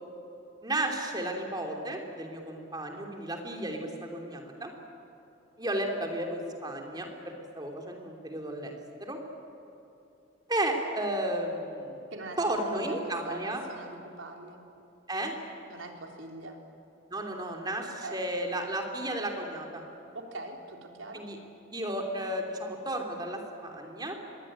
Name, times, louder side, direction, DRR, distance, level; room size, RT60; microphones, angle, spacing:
voice 1, 0.6-4.7 5.6-9.2 10.5-12.0 12.4-13.6 15.1-15.3 17.1-19.8 21.1-21.4 21.7-24.2, right 1 dB, 20° right, 2 dB, 3.1 m, -33 dB
voice 2, 12.7-14.6 15.7-16.6 18.0-18.2 20.1-21.3, right 2 dB, 80° right, 2 dB, 3.6 m, -42 dB
25.5 x 21.5 x 8.8 m, 3.0 s
head